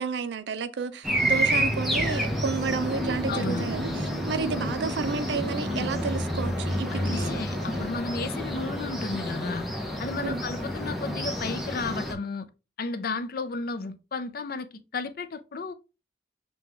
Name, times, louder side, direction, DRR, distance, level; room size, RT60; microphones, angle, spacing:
voice 1, 0.0-7.4 10.2-10.4, right 5 dB, 65° right, 0.4 m, -31 dB
sound 1, 1.0-12.1, equal, ahead, 0.7 m, -30 dB
sound 2, 2.6-8.0, equal, 35° right, 0.8 m, -35 dB
voice 2, 3.3-3.6 6.9-9.6 10.0-12.5 12.8-15.7, left 4 dB, 50° left, 0.4 m, -33 dB
5.9 x 2.3 x 3.0 m
head